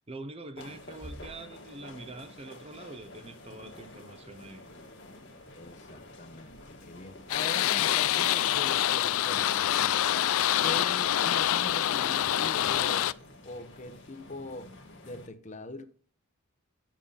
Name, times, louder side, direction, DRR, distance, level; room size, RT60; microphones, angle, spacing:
voice 1, 0.1-4.7, right 2 dB, 25° right, 0.6 m, -44 dB
sound 1, 0.5-15.0, right 1 dB, 65° right, 4.6 m, -57 dB
sound 2, 0.6-15.3, left 2 dB, 55° left, 1.7 m, -50 dB
voice 2, 5.5-10.0 10.6-13.1 13.4-14.7 15.0-15.8, left 2 dB, 35° left, 0.9 m, -42 dB
sound 3, 7.3-13.1, left 12 dB, 75° left, 0.4 m, -26 dB
8.5 x 7.5 x 5.4 m
head